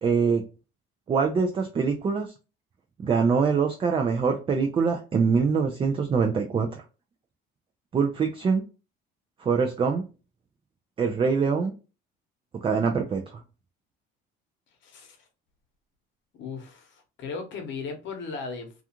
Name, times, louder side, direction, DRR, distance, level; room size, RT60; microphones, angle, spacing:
voice 1, 0.0-0.4 1.1-2.3 3.0-6.8 7.9-8.6 9.4-10.0 11.0-11.7 12.5-13.4, right 5 dB, 25° right, 4 dB, 0.4 m, -24 dB
voice 2, 14.8-15.3 16.4-18.7, left 4 dB, 60° left, 4 dB, 0.9 m, -37 dB
2.4 x 2.4 x 2.8 m, 0.31 s
cardioid pair, 110°, 21 cm